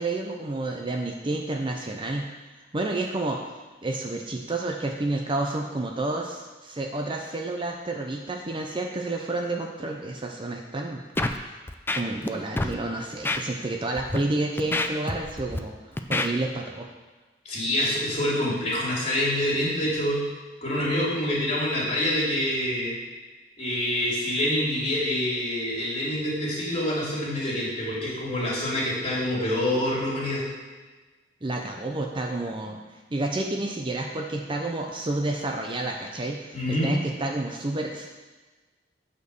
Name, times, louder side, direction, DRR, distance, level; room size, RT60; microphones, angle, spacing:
voice 1, 0.0-2.3 2.7-3.4 3.8-11.0 11.4-11.6 11.9-15.7 16.1-16.9 31.4-32.8 33.1-38.1, right 2 dB, 30° right, 1 dB, 0.7 m, -30 dB
Scratching (performance technique), 11.2-11.4 11.7-12.3 12.6-12.7 13.2-13.4 14.0-14.2 14.6-15.6 16.0-16.3, left 2 dB, 10° left, 0.4 m, -27 dB
voice 2, 17.4-20.2 20.6-22.9 23.6-30.4 36.5-36.9, left 1 dB, 35° left, -5 dB, 2.9 m, -26 dB
8.3 x 4.5 x 6.6 m, 1.2 s
head